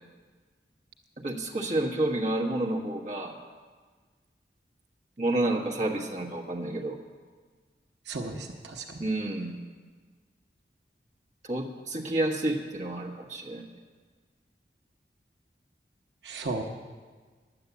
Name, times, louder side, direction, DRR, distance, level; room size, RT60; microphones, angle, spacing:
voice 1, 1.2-3.4 5.2-7.0 9.0-9.6 11.4-13.6, right 1 dB, 45° right, 0 dB, 1.3 m, -29 dB
voice 2, 8.1-9.0 16.2-16.6, right 3 dB, 85° right, 4 dB, 0.9 m, -35 dB
10.5 x 8.1 x 8.3 m, 1.5 s
head